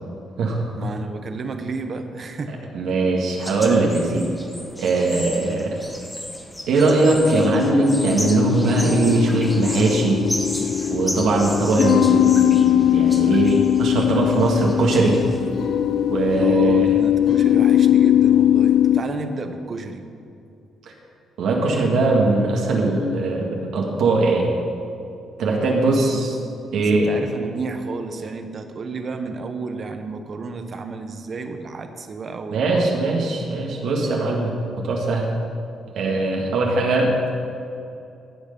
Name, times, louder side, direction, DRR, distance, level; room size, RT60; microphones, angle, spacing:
voice 1, 0.7-2.6 16.4-20.0 25.9-26.2 26.8-33.1 36.6-36.9, right 4 dB, 45° right, 7 dB, 1.1 m, -32 dB
voice 2, 2.7-4.3 4.8-5.7 6.7-10.2 10.9-15.2 16.1-16.9 21.4-23.5 23.7-24.5 25.4-26.3 26.7-27.1 32.5-34.6 34.8-35.3 35.9-37.3, right 2 dB, 75° right, -2 dB, 1.9 m, -20 dB
sound 1, 3.3-15.5, equal, 5° left, 1.2 m, -35 dB
sound 2, 7.2-19.0, left 10 dB, 60° left, 0.5 m, -19 dB
16.0 x 6.4 x 5.4 m, 2.6 s
cardioid pair, 90°, 0 cm